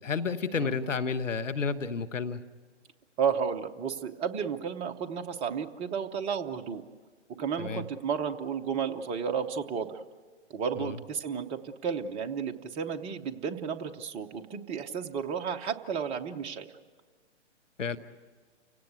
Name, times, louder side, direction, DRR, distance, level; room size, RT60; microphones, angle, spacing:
voice 1, 0.0-2.4 7.6-7.8 10.8-10.9 17.8-18.0, left 5 dB, 85° left, 10 dB, 1.3 m, -31 dB
voice 2, 3.2-6.8 7.3-10.0 10.5-16.7, right 7 dB, 15° right, 6 dB, 0.8 m, -32 dB
29.5 x 17.5 x 8.2 m, 1.5 s
hypercardioid pair, 135°, 37 cm